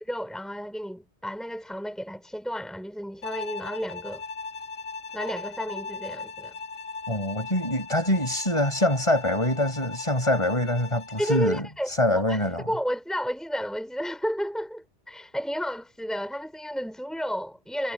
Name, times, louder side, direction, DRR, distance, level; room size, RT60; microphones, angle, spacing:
voice 1, 0.1-4.2 5.1-6.6 11.2-17.9, equal, ahead, 3.6 m, -32 dB
Bowed string instrument, 3.2-11.6, left 4 dB, 55° left, 4.2 m, -38 dB
voice 2, 7.1-11.7 12.0-12.7, left 1 dB, 25° left, 6.0 m, -24 dB
omnidirectional pair, 1.2 m